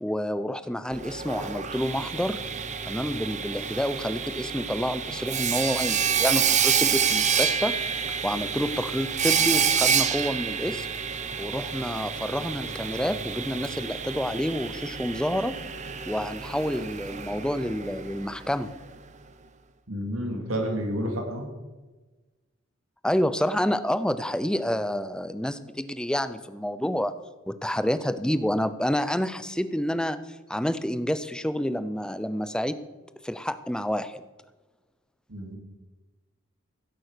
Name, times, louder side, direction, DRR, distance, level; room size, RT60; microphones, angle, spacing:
voice 1, 0.0-2.4 2.9-7.7 8.2-10.9 11.4-15.5 16.1-18.7 23.0-27.2 27.5-30.2 30.5-32.8 33.2-34.2, equal, 5° left, 13 dB, 0.5 m, -28 dB
Sawing, 0.9-18.7, right 7 dB, 35° right, 0.8 m, -28 dB
voice 2, 19.9-21.4 35.3-35.6, equal, 80° right, 3 dB, 3.0 m, -30 dB
16.0 x 8.7 x 6.8 m, 1.2 s
head